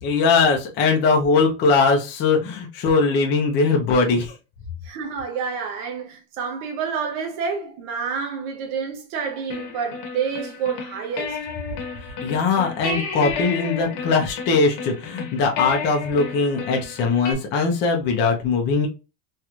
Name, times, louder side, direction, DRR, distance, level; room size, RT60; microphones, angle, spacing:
voice 1, 0.0-4.3 12.2-18.9, left 4 dB, 25° left, 0.6 m, -20 dB
voice 2, 4.8-11.4, right 6 dB, 60° right, 0.9 m, -28 dB
sound 1, 9.5-17.3, left 5 dB, 50° left, 1.0 m, -32 dB
3.2 x 3.0 x 2.4 m
supercardioid pair, 165°, 40 cm